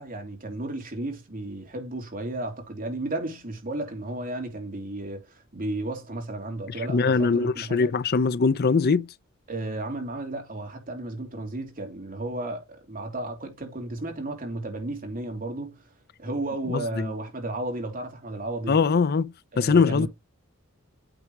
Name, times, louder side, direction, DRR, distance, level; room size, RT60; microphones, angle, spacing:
voice 1, 0.0-7.9 9.5-15.8 16.2-18.8 19.5-20.1, right 2 dB, 40° right, 3.0 m, -33 dB
voice 2, 6.9-9.1 16.7-17.1 18.7-20.1, left 4 dB, 45° left, 0.5 m, -22 dB
8.9 x 3.8 x 4.7 m
head